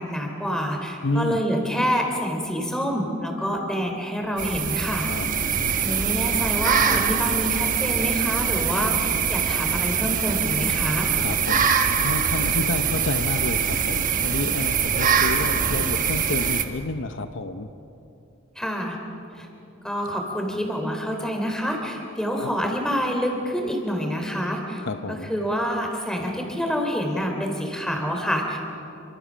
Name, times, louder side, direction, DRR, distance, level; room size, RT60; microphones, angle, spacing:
voice 1, 0.0-5.1 5.8-11.1 18.5-19.0 19.4-19.5 19.8-24.8 25.1-28.6, equal, 5° left, 2 dB, 3.3 m, -27 dB
voice 2, 1.0-1.4 5.1-6.0 11.2-17.7 22.3-22.5 24.8-25.3, left 2 dB, 60° left, 8 dB, 0.8 m, -30 dB
sound 1, 4.4-16.6, right 7 dB, 40° right, 1.3 m, -23 dB
27.5 x 24.5 x 6.3 m, 2.8 s
head